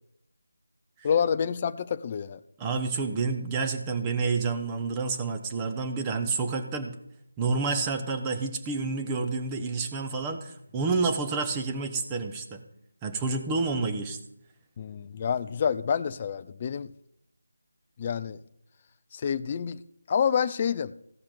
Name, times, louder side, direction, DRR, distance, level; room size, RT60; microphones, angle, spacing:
voice 1, 1.0-2.4 14.8-16.9 18.0-18.4 19.1-19.8 20.1-20.9, left 7 dB, 30° left, 13 dB, 0.5 m, -28 dB
voice 2, 2.6-7.0 7.4-12.6 13.0-14.2, right 4 dB, 15° right, 5 dB, 1.0 m, -29 dB
14.5 x 5.7 x 6.8 m, 0.77 s
figure-of-eight pair, 165°, 0 cm